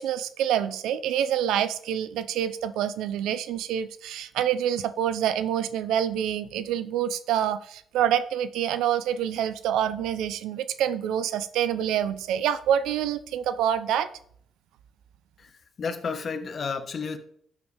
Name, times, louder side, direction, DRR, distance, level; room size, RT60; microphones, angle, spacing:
voice 1, 0.0-14.1, right 10 dB, 90° right, 13 dB, 0.6 m, -27 dB
voice 2, 15.4-17.2, left 5 dB, 45° left, 8 dB, 1.3 m, -32 dB
12.5 x 7.5 x 3.5 m, 0.64 s
cardioid pair, 90°, 0 cm